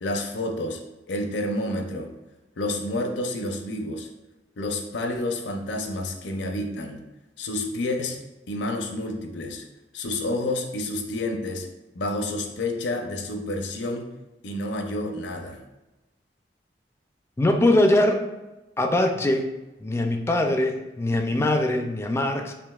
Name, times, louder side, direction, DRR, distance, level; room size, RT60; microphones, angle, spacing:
voice 1, 0.0-0.8 1.1-2.1 2.6-4.1 4.6-7.0 7.4-8.2 8.5-9.6 9.9-11.7 11.9-14.1 14.4-15.6, left 1 dB, 80° left, 3 dB, 0.6 m, -29 dB
voice 2, 17.4-18.2 18.8-19.5 19.8-22.5, left 1 dB, 15° left, 5 dB, 0.3 m, -22 dB
5.0 x 3.0 x 2.3 m, 1.0 s
head